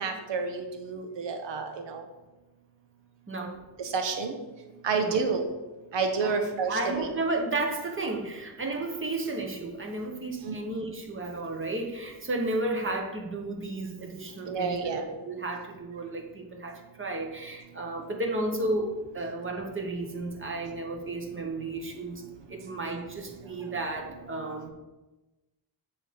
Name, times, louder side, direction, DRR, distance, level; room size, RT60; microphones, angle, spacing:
voice 1, 0.0-2.0 3.8-4.4 4.8-5.5 5.9-7.1 10.4-10.6 14.5-15.1, right 4 dB, 90° right, 5 dB, 1.1 m, -29 dB
voice 2, 3.3-3.6 4.9-5.2 6.2-14.9 15.2-22.2 22.5-24.7, right 2 dB, 30° right, 1 dB, 1.0 m, -33 dB
8.9 x 3.8 x 5.2 m, 1.1 s
wide cardioid pair, 160°, 42 cm